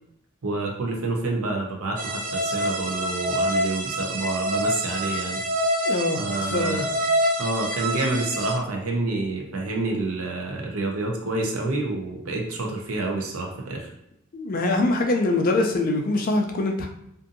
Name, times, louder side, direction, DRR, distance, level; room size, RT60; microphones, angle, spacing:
voice 1, 0.4-5.4 6.2-6.9 7.4-13.9, right 2 dB, 80° right, 0 dB, 0.6 m, -28 dB
sound 1, 2.0-8.5, equal, 40° right, 0.4 m, -26 dB
voice 2, 5.9-6.8 14.3-16.9, left 2 dB, 40° left, 3 dB, 0.3 m, -23 dB
2.6 x 2.5 x 2.5 m, 0.78 s
head